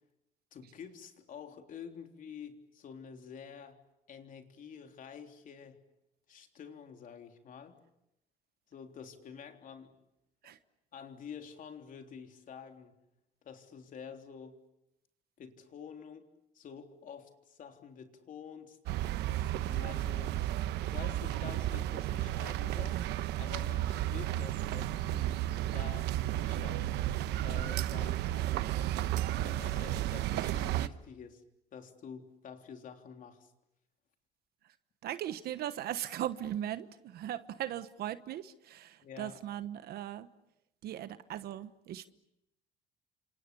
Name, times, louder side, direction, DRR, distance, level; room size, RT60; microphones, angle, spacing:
voice 1, 0.5-3.8 4.1-5.8 6.3-7.8 8.7-9.9 10.4-10.5 10.9-13.0 13.4-14.6 15.4-16.3 16.5-18.8 19.3-20.4 20.9-23.0 23.3-25.4 25.7-26.1 26.4-27.0 27.4-28.6 29.3-31.4 31.7-33.5 39.0-39.4, left 7 dB, 50° left, 5 dB, 3.5 m, -48 dB
sound 1, 18.9-30.9, right 14 dB, 85° right, 1.0 m, -33 dB
voice 2, 35.0-40.3 40.8-42.1, right 12 dB, 70° right, 12 dB, 1.2 m, -38 dB
30.0 x 26.5 x 7.0 m, 0.85 s
cardioid pair, 110°, 17 cm